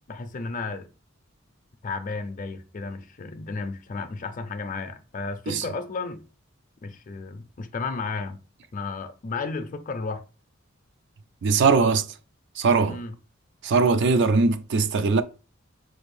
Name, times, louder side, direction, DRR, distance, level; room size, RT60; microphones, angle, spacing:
voice 1, 0.1-0.9 1.8-6.2 6.8-8.4 8.7-10.2 12.9-13.1, left 4 dB, 40° left, 0.4 m, -33 dB
voice 2, 11.4-12.1 12.6-13.0 13.6-15.2, right 4 dB, 60° right, 0.4 m, -20 dB
4.4 x 2.5 x 3.2 m
head